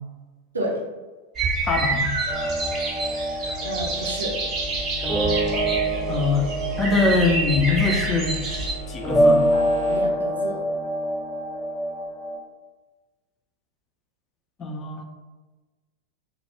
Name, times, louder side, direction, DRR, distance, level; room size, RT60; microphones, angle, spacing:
sound 1, 1.3-8.7, right 3 dB, 30° right, 0.5 m, -28 dB
voice 1, 1.6-2.2 6.1-6.5 6.8-8.4 8.9-9.5 14.6-15.0, left 4 dB, 25° left, 3 dB, 0.4 m, -23 dB
sound 2, 2.3-12.4, right 1 dB, 5° left, 0.7 m, -26 dB
sound 3, 3.3-10.0, left 3 dB, 60° left, 0.7 m, -36 dB
voice 2, 3.6-4.4 9.9-10.6, right 1 dB, 75° right, -2 dB, 0.5 m, -30 dB
2.1 x 2.1 x 2.9 m, 1.3 s
figure-of-eight pair, 90°, 0 cm